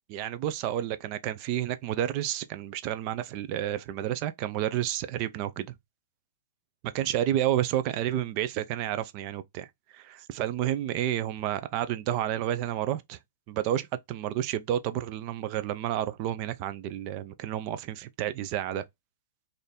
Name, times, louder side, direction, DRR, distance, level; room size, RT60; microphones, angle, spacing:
voice 1, 0.1-5.7 6.9-9.7 9.9-13.2 13.5-18.8, right 11 dB, 30° right, 0.4 m, -30 dB
4.3 x 2.6 x 3.4 m
hypercardioid pair, 160°, 0 cm